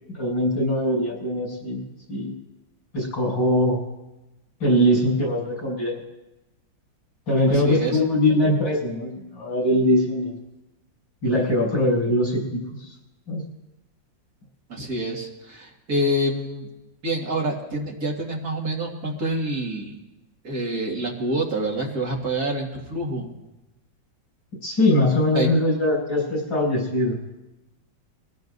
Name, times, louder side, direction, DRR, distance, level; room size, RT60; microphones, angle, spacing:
voice 1, 0.1-2.3 2.9-3.8 4.6-6.0 7.3-10.4 11.2-12.9 13.3-13.4 24.6-27.2, left 1 dB, 85° left, -5 dB, 7.1 m, -22 dB
voice 2, 7.5-8.0 14.7-16.7 17.0-19.9 20.4-23.3 25.3-25.5, right 1 dB, 55° right, -2 dB, 2.6 m, -27 dB
23.5 x 16.5 x 2.7 m, 1.0 s
omnidirectional pair, 2.0 m